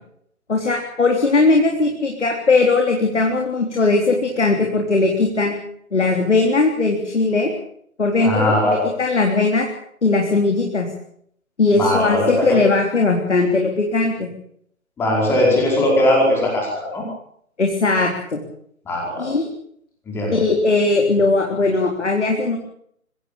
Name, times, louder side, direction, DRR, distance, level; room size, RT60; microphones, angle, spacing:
voice 1, 0.5-5.5 5.9-7.5 8.0-9.7 10.0-10.9 11.6-14.3 17.6-18.4 19.2-19.5 20.3-22.6, left 3 dB, 55° left, 2 dB, 4.0 m, -19 dB
voice 2, 8.2-8.8 11.7-12.6 15.0-17.0 18.8-19.3 20.1-20.4, left 1 dB, 5° left, -2 dB, 5.0 m, -19 dB
24.5 x 16.0 x 8.7 m, 0.68 s
figure-of-eight pair, 150°, 43 cm